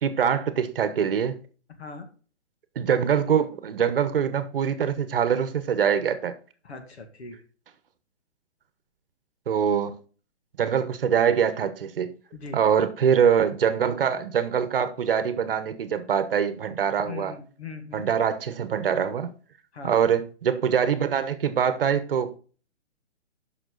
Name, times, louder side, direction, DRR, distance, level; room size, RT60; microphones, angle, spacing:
voice 1, 0.0-1.4 2.8-6.4 9.5-9.9 10.6-12.2 12.5-17.3 17.9-19.3 19.8-22.4, right 8 dB, 50° right, 1.1 m, -24 dB
voice 2, 6.6-7.4 12.3-12.6 17.0-18.0 19.7-20.2, left 4 dB, 65° left, 2.2 m, -40 dB
9.1 x 6.1 x 3.9 m
hypercardioid pair, 165°, 35 cm